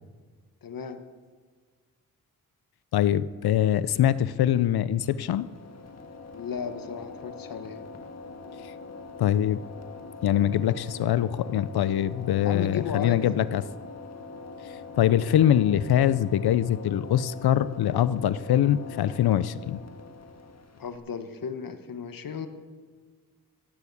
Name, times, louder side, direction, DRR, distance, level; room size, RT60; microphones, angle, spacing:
voice 1, 0.6-1.0 6.3-7.8 12.4-13.2 20.8-22.5, left 6 dB, 65° left, 9 dB, 1.3 m, -34 dB
voice 2, 2.9-5.5 9.2-9.6 10.2-13.6 15.0-19.8, left 11 dB, 85° left, 17 dB, 0.6 m, -23 dB
sound 1, 5.0-21.0, left 4 dB, 45° left, 1.6 m, -43 dB
14.0 x 9.3 x 8.3 m, 1.5 s
cardioid pair, 90°, 37 cm